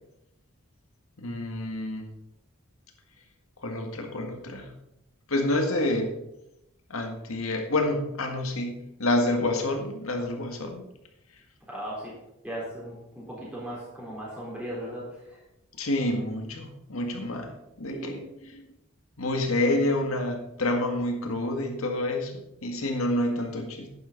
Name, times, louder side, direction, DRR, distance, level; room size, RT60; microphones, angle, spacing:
voice 1, 1.2-2.1 3.6-4.7 5.3-6.1 6.9-10.8 15.8-18.2 19.2-23.9, left 1 dB, 80° left, 4 dB, 1.8 m, -28 dB
voice 2, 11.7-12.1 12.4-15.4 17.9-18.2, right 1 dB, 5° right, -7 dB, 4.0 m, -37 dB
10.5 x 9.7 x 4.0 m, 0.88 s
head